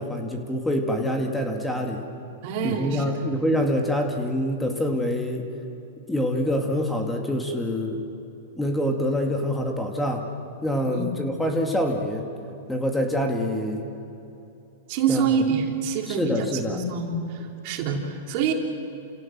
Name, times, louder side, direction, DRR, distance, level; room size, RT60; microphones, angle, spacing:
voice 1, 0.0-2.0 2.6-5.4 6.1-8.0 8.6-10.2 10.6-12.3 12.7-13.8 15.1-15.2 16.1-16.8, equal, 5° left, 2 dB, 2.3 m, -25 dB
voice 2, 2.4-3.0 10.9-11.0 14.9-18.5, right 6 dB, 50° right, 2 dB, 3.5 m, -26 dB
29.0 x 17.0 x 7.5 m, 3.0 s
hypercardioid pair, 125°, 0 cm